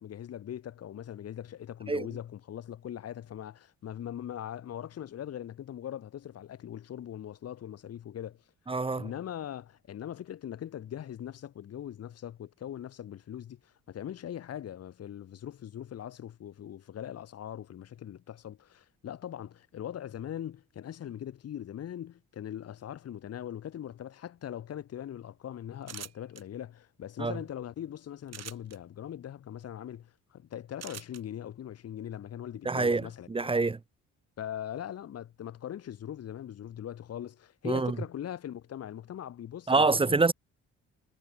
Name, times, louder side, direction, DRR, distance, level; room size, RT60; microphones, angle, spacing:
voice 1, 0.0-8.4 9.0-33.5 34.4-40.2, left 10 dB, 55° left, 1.2 m, -41 dB
voice 2, 8.7-9.1 27.2-27.4 32.6-33.8 37.6-38.0 39.7-40.3, right 3 dB, 20° right, 0.8 m, -26 dB
sound 1, 25.8-26.4 28.3-28.8 30.8-31.2, right 9 dB, 60° right, 3.4 m, -43 dB
cardioid pair, 90°, 30 cm